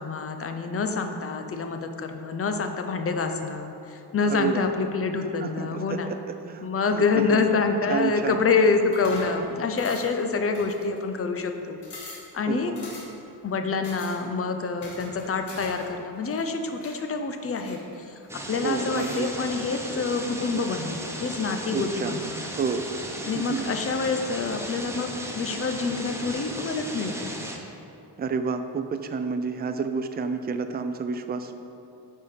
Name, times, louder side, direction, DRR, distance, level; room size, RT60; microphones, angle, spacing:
voice 1, 0.0-6.1 6.6-12.7 13.4-17.8 18.1-18.2 18.5-22.3 23.3-27.3, left 4 dB, 35° left, 6 dB, 0.6 m, -27 dB
voice 2, 4.3-4.7 5.4-6.7 6.9-7.5 7.9-8.4 12.5-12.8 18.6-19.3 20.5-20.6 21.7-22.2 22.5-22.9 23.3-23.6 28.2-31.6, right 5 dB, 25° right, 8 dB, 0.4 m, -30 dB
sound 1, 8.9-9.4 9.8-10.2 10.5-11.2 11.5-11.6 11.8-12.3 12.8-13.2 13.8-14.2 14.8-15.9 16.2-17.0 17.5-18.3 18.9-19.3, left 2 dB, 70° left, 1.7 m, -42 dB
sound 2, 18.3-27.6, right 1 dB, 5° right, 0.8 m, -36 dB
8.8 x 5.4 x 5.0 m, 2.7 s
wide cardioid pair, 135°, 42 cm